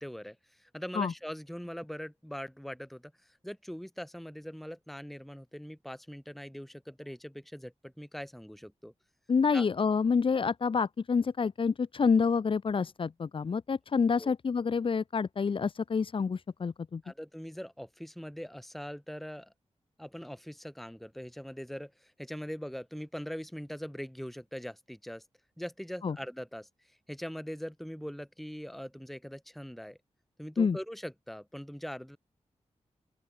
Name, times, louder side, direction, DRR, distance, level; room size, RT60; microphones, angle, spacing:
voice 1, 0.0-8.9 9.5-9.6 14.2-14.3 17.0-19.5 20.0-25.2 25.6-26.7 27.1-30.0 30.4-32.2, equal, ahead, 1.6 m, -42 dB
voice 2, 9.3-17.0 26.0-26.1 30.6-30.8, left 5 dB, 45° left, 0.5 m, -28 dB
open air
cardioid pair, 65°, 12 cm